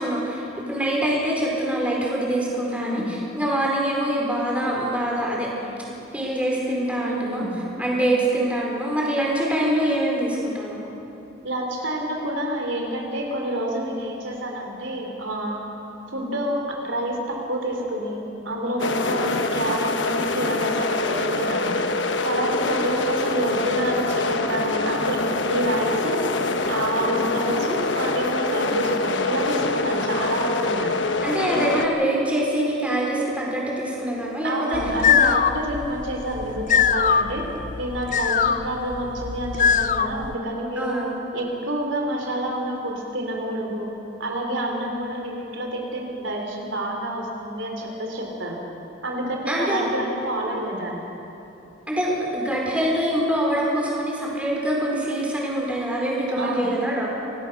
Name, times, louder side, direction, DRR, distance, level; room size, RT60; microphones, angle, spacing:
voice 1, 0.0-5.7 6.1-7.4 7.8-10.9 22.7-22.8 30.0-30.2 31.2-34.8 35.3-35.4 40.8-41.2 49.5-49.9 51.9-57.1, right 1 dB, 5° right, -3 dB, 4.4 m, -24 dB
voice 2, 2.7-3.1 7.0-7.5 11.4-15.6 16.1-21.9 22.2-26.2 26.7-31.0 31.5-31.7 34.4-37.4 37.8-41.0 41.3-43.9 44.2-48.6 49.0-51.0 56.3-56.7, right 1 dB, 75° right, 1 dB, 3.4 m, -28 dB
sound 1, 18.8-31.9, left 3 dB, 65° left, 1.2 m, -25 dB
sound 2, 34.7-40.3, left 7 dB, 40° left, 0.5 m, -22 dB
26.0 x 18.5 x 6.6 m, 2.9 s
head